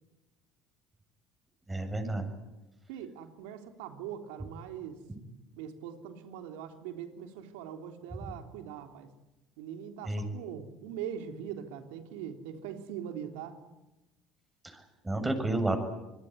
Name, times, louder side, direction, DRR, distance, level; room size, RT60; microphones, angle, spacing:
voice 1, 1.7-2.3 10.1-10.2 14.6-15.8, right 2 dB, 15° right, 6 dB, 7.6 m, -31 dB
voice 2, 2.9-5.0 5.6-9.1 9.6-13.6, right 9 dB, 80° right, 6 dB, 3.5 m, -42 dB
27.0 x 21.5 x 9.8 m, 1.0 s
supercardioid pair, 80°, 0 cm